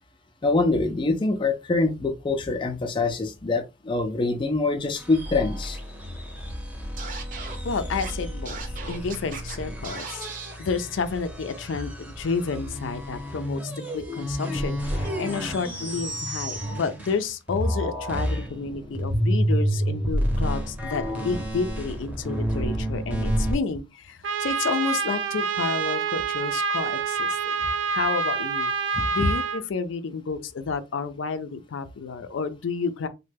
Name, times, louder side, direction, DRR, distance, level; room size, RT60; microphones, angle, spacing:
voice 1, 0.4-5.8 28.9-29.3, left 3 dB, 25° left, 0.4 m, -25 dB
sound 1, 5.0-17.2 17.5-23.5, equal, 10° right, 0.7 m, -30 dB
Scratching (performance technique), 7.0-7.6 8.0-8.1 8.5-9.6 9.8-10.5, right 5 dB, 45° right, 0.6 m, -37 dB
voice 2, 7.6-10.3 10.6-28.7 29.1-33.1, left 5 dB, 85° left, 0.4 m, -30 dB
Trumpet, 24.2-29.6, right 5 dB, 85° right, 0.4 m, -27 dB
3.1 x 2.1 x 3.3 m
head